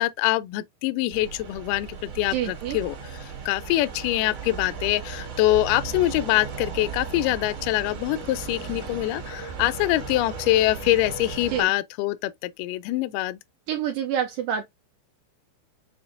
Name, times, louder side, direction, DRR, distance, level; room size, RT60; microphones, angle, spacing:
voice 1, 0.0-3.0 3.5-13.4, left 16 dB, 90° left, 1.9 m, -24 dB
sound 1, 1.1-11.6, right 5 dB, 50° right, 2.1 m, -36 dB
voice 2, 2.3-2.8 11.5-11.7 13.7-14.6, right 9 dB, 80° right, 2.0 m, -27 dB
6.8 x 2.5 x 2.5 m
omnidirectional pair, 4.3 m